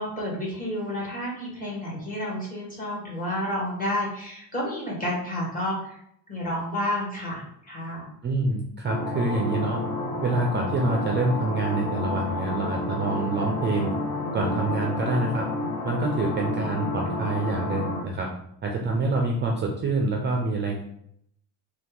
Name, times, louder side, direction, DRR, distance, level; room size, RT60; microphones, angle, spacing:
voice 1, 0.0-6.0 6.3-8.0 14.4-14.6, left 1 dB, 20° left, -6 dB, 1.5 m, -30 dB
voice 2, 8.2-9.8 10.2-13.9 14.3-15.4 15.8-18.3 18.6-20.8, right 3 dB, 30° right, 0 dB, 0.4 m, -26 dB
sound 1, 8.8-18.0, left 2 dB, 50° left, 1.0 m, -30 dB
2.8 x 2.3 x 3.5 m, 0.72 s
cardioid pair, 120°, 39 cm